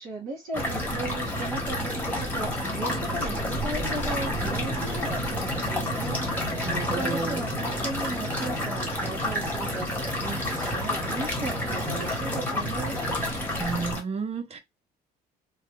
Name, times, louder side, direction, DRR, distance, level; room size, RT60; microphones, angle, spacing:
voice 1, 0.0-6.2 6.9-13.0, right 2 dB, 55° right, 1.8 m, -37 dB
sound 1, 0.5-14.0, left 1 dB, 10° left, 1.4 m, -29 dB
voice 2, 6.6-7.4 13.6-14.6, right 4 dB, 40° right, 0.7 m, -32 dB
3.1 x 2.2 x 3.2 m
cardioid pair, 110°, 17 cm